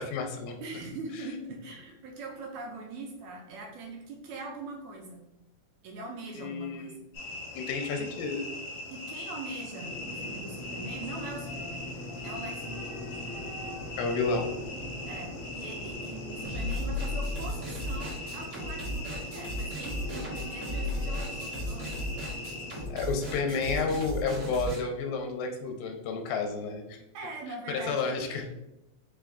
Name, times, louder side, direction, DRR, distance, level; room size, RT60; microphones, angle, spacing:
voice 1, 0.0-0.6 6.4-7.0 7.5-8.5 14.0-14.5 22.9-26.8 27.7-28.4, left 4 dB, 85° left, 3 dB, 2.0 m, -31 dB
voice 2, 0.6-5.3 5.8-7.0 8.9-12.0 12.2-13.0 15.1-22.2 27.1-28.4, right 3 dB, 80° right, 0 dB, 1.8 m, -42 dB
sound 1, 7.1-22.8, left 2 dB, 70° left, 1.9 m, -41 dB
sound 2, 9.8-23.9, left 1 dB, 40° right, 0.5 m, -42 dB
sound 3, 16.4-24.8, left 1 dB, 60° right, 1.1 m, -35 dB
4.9 x 2.2 x 3.5 m, 0.92 s
omnidirectional pair, 3.6 m